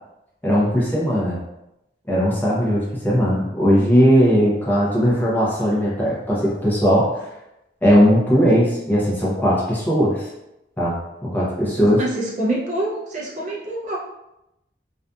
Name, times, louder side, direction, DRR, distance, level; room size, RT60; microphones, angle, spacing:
voice 1, 0.4-1.4 2.1-7.3 7.8-10.3 10.8-12.0, equal, 10° left, -7 dB, 0.6 m, -18 dB
voice 2, 11.6-14.0, right 1 dB, 40° right, -4 dB, 0.5 m, -26 dB
2.6 x 2.4 x 2.3 m, 0.88 s
head